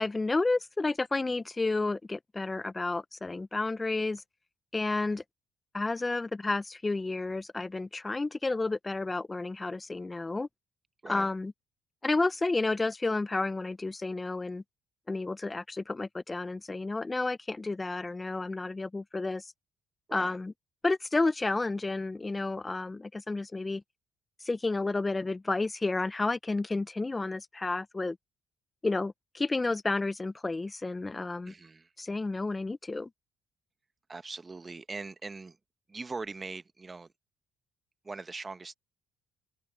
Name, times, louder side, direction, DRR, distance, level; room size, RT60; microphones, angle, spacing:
voice 1, 0.0-4.2 4.7-5.2 5.7-10.5 11.1-11.5 12.0-14.6 15.1-19.5 20.1-20.5 20.8-23.8 24.4-28.2 28.8-31.5 32.0-33.1, left 3 dB, 20° left, 0.6 m, -31 dB
voice 2, 4.9-5.2 11.0-11.3 20.1-20.4 31.4-31.9 34.1-35.6 35.9-37.1 38.0-38.7, right 3 dB, 30° right, 1.2 m, -41 dB
open air
supercardioid pair, 75°, 0 cm